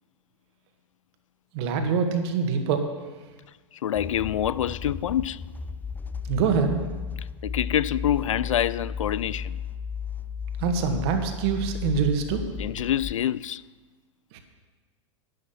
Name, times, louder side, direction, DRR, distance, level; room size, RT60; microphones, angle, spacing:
voice 1, 1.5-2.9 6.2-6.8 10.6-12.4 14.3-14.4, right 6 dB, 55° right, 1.9 m, -25 dB
voice 2, 3.7-5.4 7.2-9.6 12.6-13.6, left 10 dB, 80° left, 0.4 m, -26 dB
sound 1, 3.9-13.1, left 7 dB, 10° left, 0.5 m, -34 dB
11.0 x 11.0 x 5.8 m
hypercardioid pair, 100°, 16 cm